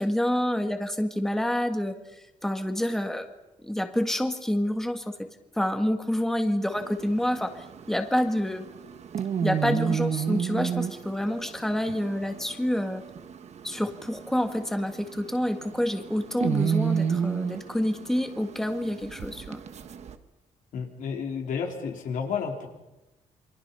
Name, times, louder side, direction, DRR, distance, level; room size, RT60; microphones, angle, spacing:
voice 1, 0.0-3.3 3.6-5.3 5.5-8.7 9.4-13.0 13.6-19.6, left 1 dB, 5° left, 6 dB, 1.6 m, -28 dB
sound 1, 6.7-20.2, right 7 dB, 55° right, 1.5 m, -32 dB
voice 2, 20.7-22.7, left 6 dB, 80° left, 2 dB, 4.2 m, -31 dB
28.5 x 23.5 x 5.6 m, 0.99 s
cardioid pair, 135°, 13 cm